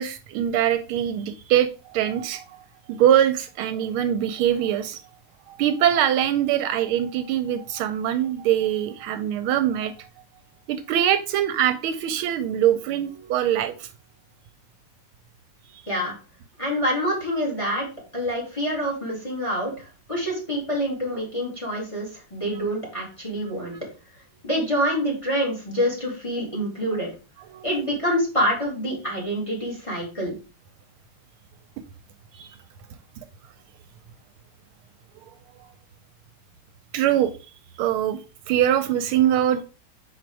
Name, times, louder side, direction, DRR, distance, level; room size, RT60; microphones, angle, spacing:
voice 1, 0.0-2.6 2.9-5.0 5.5-10.1 10.7-13.9 15.7-15.8 23.7-23.8 26.4-26.8 27.5-27.7 32.3-32.5 36.9-37.3 37.8-38.2 38.5-39.6, right 10 dB, 80° right, 10 dB, 1.4 m, -23 dB
voice 2, 16.6-17.9 18.1-23.7 24.4-27.1 27.6-30.4, equal, 15° left, -1 dB, 2.2 m, -26 dB
5.0 x 4.6 x 4.6 m, 0.33 s
omnidirectional pair, 2.4 m